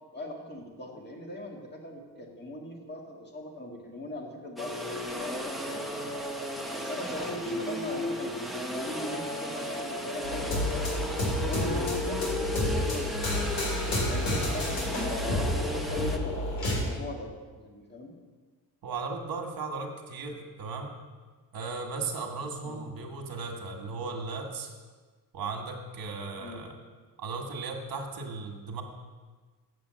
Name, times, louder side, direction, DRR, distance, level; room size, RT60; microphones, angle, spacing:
voice 1, 0.1-6.1 6.7-11.0 11.4-14.7 15.1-18.1 22.6-22.8 26.4-26.6, left 1 dB, 25° left, 0 dB, 1.8 m, -40 dB
sound 1, 4.6-16.2, equal, ahead, 0.7 m, -35 dB
sound 2, 10.2-16.9, left 1 dB, 70° left, 3.3 m, -30 dB
voice 2, 18.8-20.9 21.5-24.7 25.3-26.8 27.2-28.8, right 4 dB, 65° right, 3 dB, 1.5 m, -36 dB
7.6 x 7.2 x 7.5 m, 1.4 s
wide cardioid pair, 170°, 37 cm